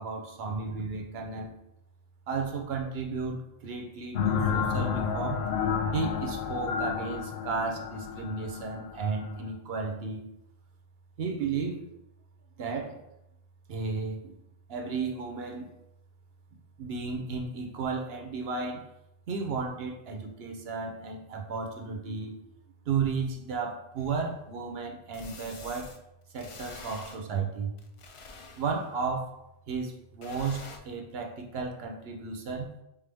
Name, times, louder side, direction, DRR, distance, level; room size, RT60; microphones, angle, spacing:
voice 1, 0.0-1.5 2.3-5.4 5.9-10.3 11.2-11.8 12.6-13.0 13.7-14.3 14.7-15.7 16.8-18.9 19.3-22.4 22.9-26.0 26.3-27.7 28.6-29.3 29.7-32.7, right 5 dB, 75° right, 3 dB, 1.0 m, -33 dB
sound 1, 4.1-9.5, left 6 dB, 85° left, 0.9 m, -30 dB
sound 2, 24.0-24.1 25.1-26.0 26.3-27.2 27.8-28.9 30.2-30.8, left 4 dB, 45° left, 0.4 m, -46 dB
4.0 x 3.5 x 3.4 m, 0.84 s
omnidirectional pair, 1.0 m